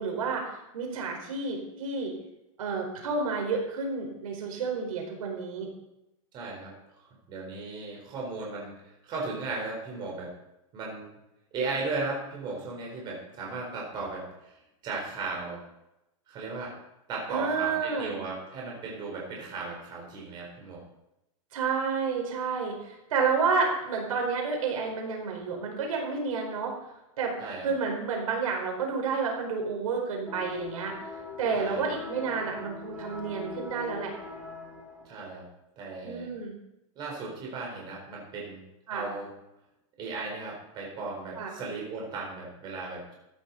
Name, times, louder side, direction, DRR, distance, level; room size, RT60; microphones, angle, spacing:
voice 1, 0.0-2.1 2.6-5.7 17.3-18.2 21.5-26.7 27.2-27.3 27.6-31.1 31.4-34.1 36.0-36.5 38.9-39.1 41.4-41.5, right 5 dB, 80° right, 1 dB, 4.6 m, -30 dB
voice 2, 6.3-6.7 7.3-8.7 9.0-10.3 10.7-11.1 11.5-14.6 14.8-15.6 16.3-16.8 17.1-20.8 27.4-27.7 31.5-31.9 35.0-35.5 35.8-36.3 37.0-38.6 38.9-39.3 40.0-43.1, right 3 dB, 25° right, -2 dB, 4.2 m, -36 dB
sound 1, 30.3-35.2, left 3 dB, 5° right, 2.2 m, -42 dB
14.5 x 11.5 x 4.1 m, 0.87 s
supercardioid pair, 170°, 18 cm